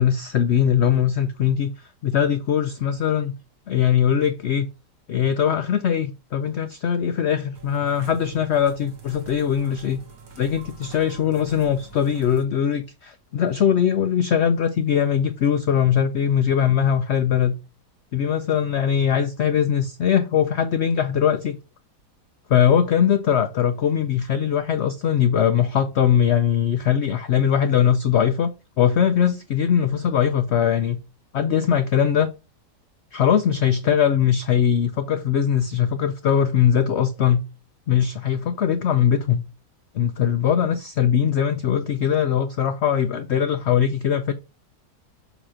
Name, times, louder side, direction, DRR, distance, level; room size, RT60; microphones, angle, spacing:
voice 1, 0.0-3.3 3.7-4.7 5.1-10.0 10.4-17.6 18.1-21.6 22.5-28.5 28.8-31.0 31.3-32.3 33.1-37.4 37.9-39.4 39.9-44.3, left 8 dB, 75° left, 0.6 m, -21 dB
sound 1, 7.5-12.4, right 3 dB, 60° right, 1.7 m, -45 dB
7.0 x 2.9 x 4.8 m
omnidirectional pair, 1.8 m